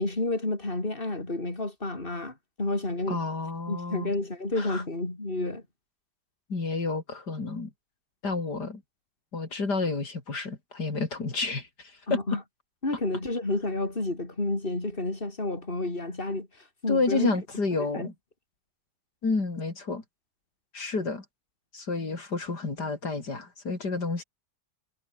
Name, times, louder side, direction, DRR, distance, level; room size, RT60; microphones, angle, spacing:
voice 1, 0.0-3.2 3.7-5.6 12.1-12.4 12.8-16.5 16.8-17.3 17.9-18.1, left 2 dB, 30° left, 4.8 m, -30 dB
voice 2, 3.1-4.1 4.6-4.8 6.5-7.7 8.2-8.8 9.3-12.2 16.9-18.1 19.2-20.0 20.7-21.2 21.7-24.2, left 3 dB, 85° left, 4.6 m, -30 dB
omnidirectional pair, 1.7 m